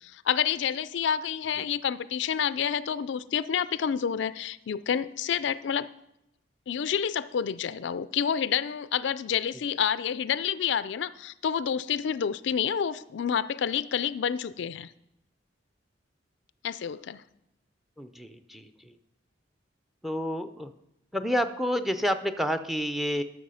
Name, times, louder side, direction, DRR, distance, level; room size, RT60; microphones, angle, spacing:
voice 1, 0.0-5.9 6.7-14.9 16.6-17.2, left 8 dB, 70° left, 16 dB, 0.4 m, -29 dB
voice 2, 18.0-19.0 20.0-20.7 21.1-23.2, equal, ahead, 9 dB, 0.5 m, -29 dB
12.5 x 6.7 x 5.6 m, 0.85 s
head